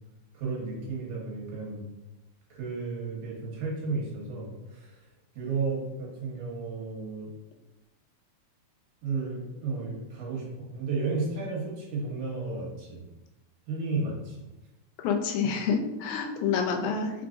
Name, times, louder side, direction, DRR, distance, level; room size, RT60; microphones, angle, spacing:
voice 1, 0.3-1.9 2.5-5.1 5.4-7.3 9.0-13.0 13.7-14.4, right 4 dB, 80° right, -3 dB, 2.6 m, -33 dB
voice 2, 15.0-17.3, left 6 dB, 90° left, 4 dB, 2.0 m, -28 dB
4.7 x 4.1 x 2.5 m, 1.0 s
omnidirectional pair, 3.3 m